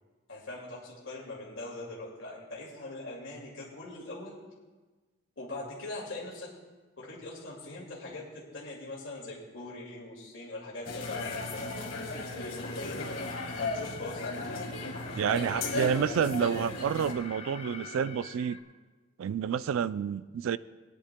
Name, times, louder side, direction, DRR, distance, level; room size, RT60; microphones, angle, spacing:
voice 1, 0.3-4.3 5.4-6.5 7.0-11.7 12.3-14.7 15.6-16.0 17.5-18.1, left 2 dB, 70° left, -5 dB, 2.2 m, -42 dB
sound 1, 10.9-17.1, left 2 dB, 85° left, 1.6 m, -36 dB
Alarm, 11.0-18.6, left 4 dB, 30° left, 0.6 m, -46 dB
voice 2, 15.2-18.6 19.2-20.6, right 7 dB, 80° right, 16 dB, 0.3 m, -29 dB
21.0 x 10.0 x 2.2 m, 1.3 s
head